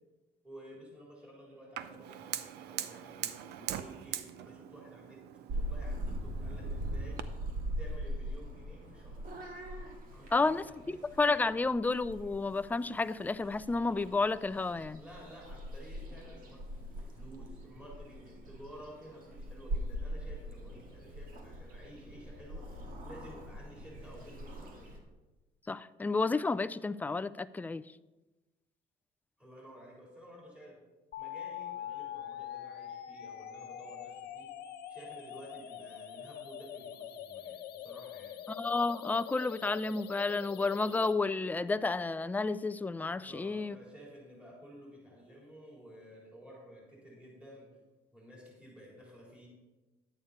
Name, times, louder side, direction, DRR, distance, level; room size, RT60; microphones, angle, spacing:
voice 1, 0.4-7.2 7.8-9.2 10.1-10.6 10.8-11.0 15.0-25.0 29.4-30.8 31.2-34.5 34.9-38.4 43.2-47.7 48.1-49.5, equal, 5° right, -4 dB, 3.9 m, -52 dB
Fire, 1.8-7.2, right 11 dB, 80° right, 0.6 m, -42 dB
Purr / Meow, 5.5-25.0, equal, 55° right, 1.9 m, -41 dB
voice 2, 10.3-15.0 25.7-27.8 38.5-43.8, left 3 dB, 10° left, 14 dB, 0.3 m, -31 dB
sound 1, 31.1-41.1, left 9 dB, 70° left, 0.8 m, -44 dB
11.0 x 8.7 x 4.2 m, 1.1 s
cardioid pair, 110°, 17 cm